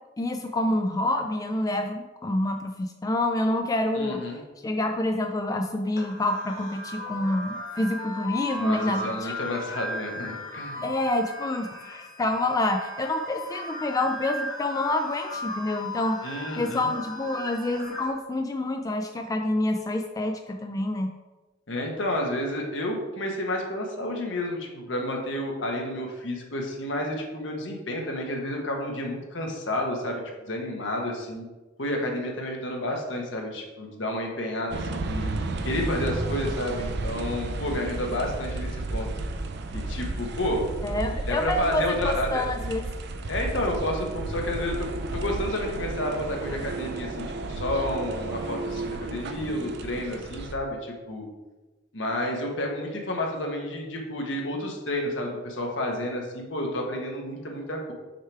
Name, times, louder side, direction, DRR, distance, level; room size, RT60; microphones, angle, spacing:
voice 1, 0.2-4.2 4.6-9.3 10.8-16.3 16.6-21.1 40.8-42.8, left 1 dB, 20° left, 4 dB, 0.3 m, -27 dB
voice 2, 3.9-4.4 8.6-10.9 16.2-16.9 21.7-30.2 30.5-31.5 31.8-35.3 35.6-39.1 39.7-40.7 41.3-42.5 43.3-44.9 45.1-51.3 51.9-57.9, left 1 dB, 70° left, 1 dB, 1.1 m, -30 dB
sound 1, 6.0-18.1, left 1 dB, 45° left, 1.7 m, -37 dB
sound 2, 34.7-50.5, right 2 dB, 60° right, 0.5 m, -33 dB
6.5 x 3.4 x 4.6 m, 1.2 s
head